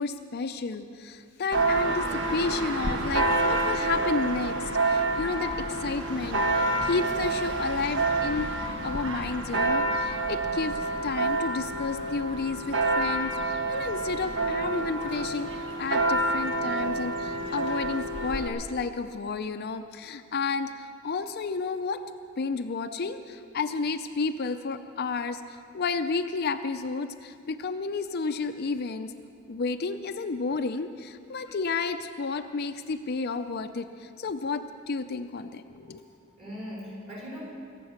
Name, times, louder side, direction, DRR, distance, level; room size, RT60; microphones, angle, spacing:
voice 1, 0.0-8.5 8.8-15.5 15.8-22.0 22.4-29.1 29.5-36.0, left 4 dB, 50° left, 8 dB, 0.5 m, -31 dB
Church bell, 1.5-18.5, right 2 dB, 65° right, 1.4 m, -28 dB
voice 2, 35.8-37.4, equal, 30° right, -6 dB, 5.2 m, -41 dB
23.0 x 8.4 x 6.4 m, 2.3 s
head